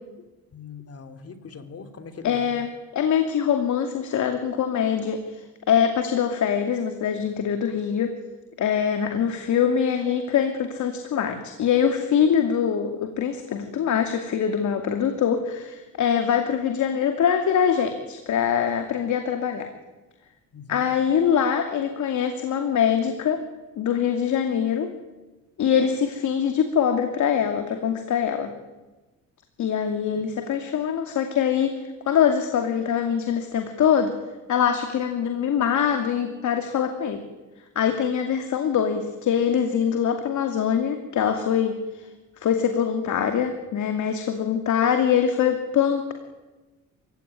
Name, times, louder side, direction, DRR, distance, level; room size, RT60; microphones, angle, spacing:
voice 1, 0.5-2.4 20.5-20.9 30.2-30.3, left 5 dB, 50° left, 8 dB, 3.3 m, -41 dB
voice 2, 2.2-8.1 8.6-19.7 20.7-23.4 23.8-24.9 25.6-28.5 29.6-34.1 34.5-37.2 37.8-42.0 42.4-46.1, left 8 dB, 70° left, 6 dB, 2.6 m, -23 dB
27.5 x 17.0 x 9.7 m, 1.2 s
cardioid pair, 90°, 30 cm